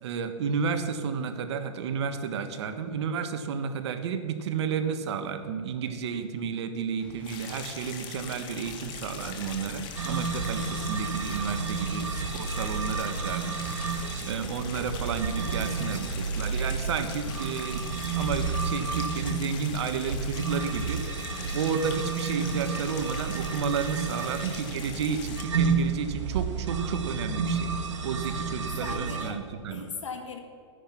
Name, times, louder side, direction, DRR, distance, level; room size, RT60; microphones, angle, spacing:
voice 1, 0.0-17.8 18.1-21.0 21.5-27.7 28.0-29.8, right 6 dB, 65° right, 8 dB, 1.4 m, -32 dB
Boom, 7.0-11.4, left 2 dB, 10° left, 3.4 m, -49 dB
sound 1, 7.2-25.4, left 7 dB, 30° left, 1.5 m, -42 dB
sound 2, 9.9-29.3, right 5 dB, 85° right, 1.9 m, -31 dB
voice 2, 21.3-21.8 28.3-29.4 29.7-30.4, left 5 dB, 90° left, 5 dB, 2.2 m, -40 dB
13.5 x 10.0 x 6.0 m, 2.4 s
hypercardioid pair, 145°, 15 cm